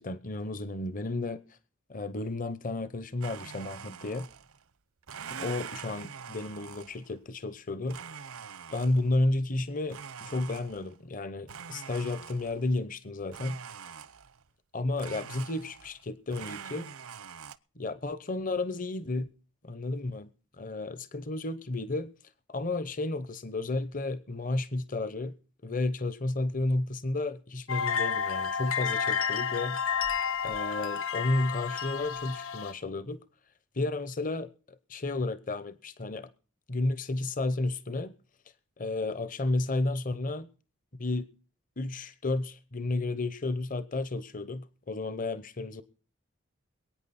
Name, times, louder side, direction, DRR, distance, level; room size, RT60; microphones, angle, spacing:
voice 1, 0.0-1.4 1.9-4.3 5.3-8.0 8.7-13.6 14.7-16.9 17.8-19.3 19.6-20.3 20.6-22.1 22.5-25.3 25.6-29.9 30.4-33.2 33.7-34.5 34.9-36.3 36.7-38.1 38.8-40.5 41.0-41.3 41.8-45.8, left 2 dB, 40° left, 0.8 m, -32 dB
Domestic sounds home sounds, 3.2-4.6 5.0-7.1 7.9-9.2 9.9-11.0 11.5-12.7 13.3-14.4 15.0-16.0 16.3-17.6, right 7 dB, 85° right, 0.8 m, -44 dB
sound 1, 27.7-32.7, left 7 dB, 85° left, 1.5 m, -31 dB
22.5 x 9.3 x 4.2 m
head